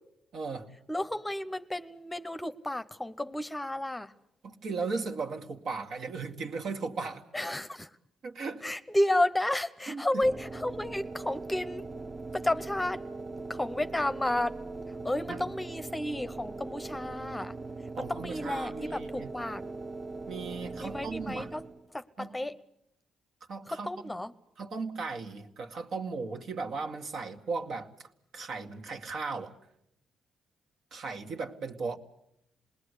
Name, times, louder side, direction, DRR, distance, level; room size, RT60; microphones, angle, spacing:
voice 1, 0.3-0.7 4.4-7.2 8.2-8.7 9.9-10.2 15.3-15.5 18.0-19.3 20.3-21.5 22.2-22.3 23.5-23.9 24.6-28.1 28.3-29.5 30.9-32.0, right 4 dB, 65° right, 3 dB, 2.1 m, -36 dB
voice 2, 0.9-4.1 7.3-7.9 8.6-11.8 12.3-13.0 13.5-14.6 15.0-17.5 18.0-19.7 20.8-21.6 21.9-22.6 23.7-24.3, left 1 dB, 10° left, 12 dB, 0.9 m, -32 dB
sound 1, 10.2-21.9, right 3 dB, 30° right, 1.1 m, -40 dB
27.0 x 20.0 x 8.3 m, 0.78 s
cardioid pair, 90°, 0 cm